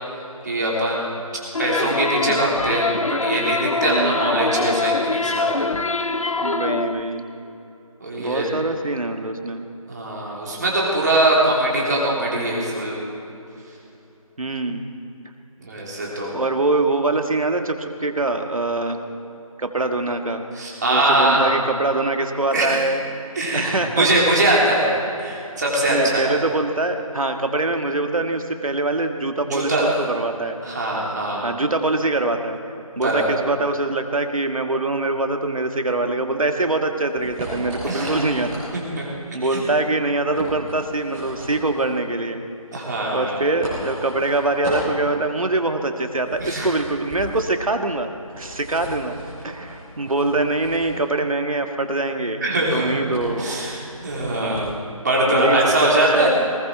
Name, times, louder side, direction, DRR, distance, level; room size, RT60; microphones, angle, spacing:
voice 1, 0.4-1.2 1.6-5.7 8.0-8.5 9.9-13.0 15.6-16.3 20.5-21.4 22.5-22.8 23.4-24.9 25.2-26.2 29.5-30.0 30.6-31.5 32.9-33.3 37.9-38.1 39.0-39.1 39.5-39.6 42.7-43.4 46.4-46.7 52.4-52.9 53.4-54.7 55.0-56.3, right 1 dB, 30° right, -4 dB, 3.2 m, -22 dB
sound 1, 1.5-7.0, left 3 dB, 65° left, 0.8 m, -24 dB
voice 2, 3.9-4.3 6.4-7.2 8.2-9.6 14.4-14.9 16.3-19.0 19.6-20.4 20.9-23.0 23.5-24.4 25.9-30.6 31.4-32.6 33.0-38.5 39.0-39.1 39.3-42.4 43.1-48.1 48.4-52.4 52.7-53.5 54.3-54.8 55.3-56.3, right 2 dB, 70° right, 6 dB, 1.5 m, -24 dB
sound 2, 36.5-54.9, equal, 10° right, 3.8 m, -36 dB
19.5 x 15.0 x 4.5 m, 2.9 s
figure-of-eight pair, 170°, 19 cm